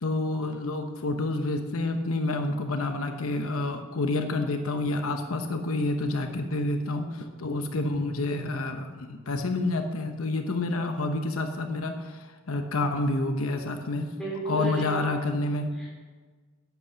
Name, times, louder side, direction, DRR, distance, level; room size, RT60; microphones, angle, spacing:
voice 1, 0.0-14.1 14.5-15.7, left 2 dB, 75° left, 5 dB, 0.9 m, -28 dB
voice 2, 14.2-15.2 15.7-16.1, right 1 dB, ahead, -6 dB, 3.9 m, -34 dB
11.0 x 8.3 x 5.7 m, 1.4 s
head